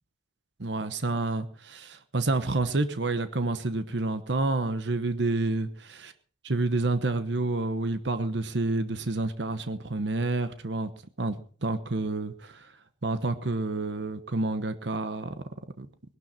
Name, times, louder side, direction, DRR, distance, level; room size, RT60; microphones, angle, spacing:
voice 1, 0.6-6.1 6.4-10.9 11.2-11.4 11.6-12.7 13.0-15.3 15.8-15.9, right 2 dB, 70° right, 11 dB, 1.1 m, -29 dB
20.0 x 12.0 x 4.3 m, 0.43 s
head